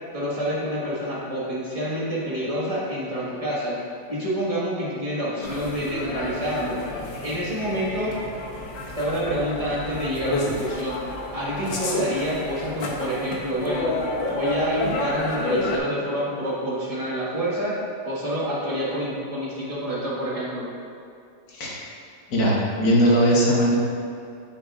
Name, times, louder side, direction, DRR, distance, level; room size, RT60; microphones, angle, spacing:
voice 1, 0.1-3.8 4.1-6.8 7.2-8.2 9.0-11.0 11.3-13.9 14.3-17.7 18.0-20.7, equal, 20° right, -7 dB, 1.6 m, -27 dB
sound 1, 5.4-15.8, left 2 dB, 85° left, 1.6 m, -30 dB
voice 2, 21.5-21.8 22.3-23.8, equal, 55° left, -4 dB, 1.8 m, -19 dB
8.6 x 7.4 x 2.5 m, 2.5 s
omnidirectional pair, 2.0 m